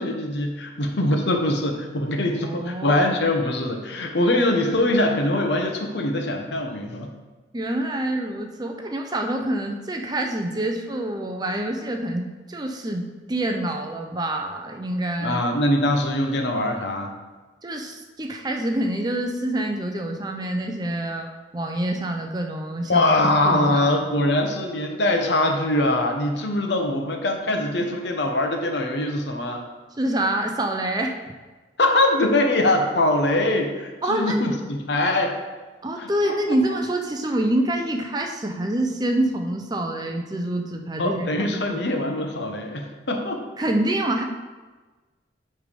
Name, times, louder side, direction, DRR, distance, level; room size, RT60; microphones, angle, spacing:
voice 1, 0.0-7.1 15.2-17.1 22.9-29.7 31.8-35.3 36.0-36.3 41.0-43.4, left 1 dB, 70° left, 3 dB, 0.9 m, -23 dB
voice 2, 2.4-3.1 7.5-15.4 17.6-24.0 30.0-31.2 34.0-34.5 35.8-41.8 43.6-44.2, right 1 dB, 20° right, 4 dB, 0.5 m, -26 dB
8.3 x 3.4 x 5.1 m, 1.3 s
head